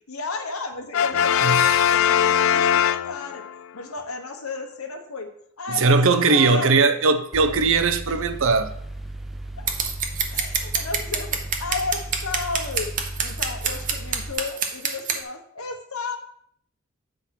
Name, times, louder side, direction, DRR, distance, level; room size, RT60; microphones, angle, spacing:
voice 1, 0.1-3.4 3.7-5.3 5.6-6.0 6.3-7.1 8.1-8.2 9.6-9.7 10.3-12.9 13.2-16.2, left 4 dB, 90° left, 1.3 m, -33 dB
Brass instrument, 0.9-3.6, left 9 dB, 65° left, 0.3 m, -20 dB
voice 2, 1.4-1.8 5.7-8.7, right 4 dB, 65° right, 0.7 m, -19 dB
Mechanical fan, 7.3-14.3, right 1 dB, ahead, 0.5 m, -35 dB
Scissors, 9.7-15.2, right 6 dB, 40° right, 1.0 m, -26 dB
8.5 x 3.9 x 5.9 m
head